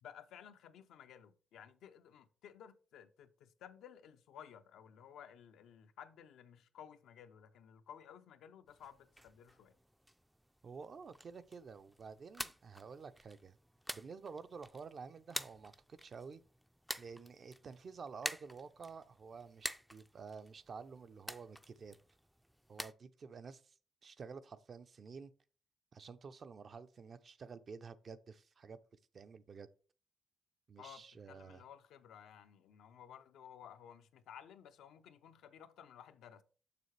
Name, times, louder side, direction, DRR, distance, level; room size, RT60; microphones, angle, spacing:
voice 1, 0.0-9.8 30.8-36.4, left 9 dB, 85° left, 0.6 m, -56 dB
sound 1, 8.7-22.9, equal, ahead, 0.4 m, -49 dB
voice 2, 10.6-13.6 13.9-16.4 17.0-22.0 22.7-23.7 24.0-25.3 25.9-28.8 29.1-29.7 30.7-31.6, right 5 dB, 50° right, 0.5 m, -50 dB
6.7 x 6.5 x 3.2 m
cardioid pair, 90°, 0 cm